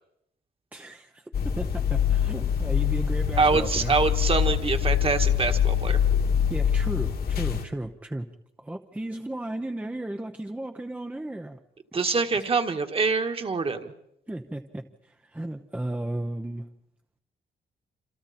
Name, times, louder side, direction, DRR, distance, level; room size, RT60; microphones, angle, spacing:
voice 1, 0.7-3.9 6.5-8.3 8.6-11.6 12.4-12.5 14.3-16.7, right 1 dB, 10° right, 5 dB, 0.9 m, -35 dB
sound 1, 1.3-7.6, left 8 dB, 55° left, 2.1 m, -24 dB
voice 2, 3.4-6.0 11.9-13.9, right 4 dB, 30° right, 7 dB, 1.8 m, -25 dB
27.5 x 27.5 x 4.3 m, 0.78 s
cardioid pair, 135°, 18 cm